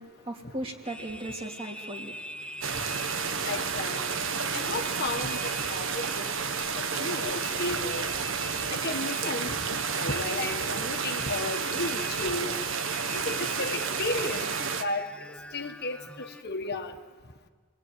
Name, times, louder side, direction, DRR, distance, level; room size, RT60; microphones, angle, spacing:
voice 1, 0.0-2.7, right 1 dB, 25° right, 2 dB, 2.9 m, -38 dB
sound 1, 0.8-16.4, equal, 5° left, 0.7 m, -42 dB
sound 2, 2.6-14.8, right 6 dB, 65° right, 1.4 m, -31 dB
voice 2, 3.4-4.1 4.5-6.3 6.7-8.1 8.7-9.5 10.0-12.5 13.1-15.0 15.5-16.9, left 2 dB, 50° left, 5 dB, 1.6 m, -34 dB
28.0 x 20.5 x 9.5 m, 1.5 s
head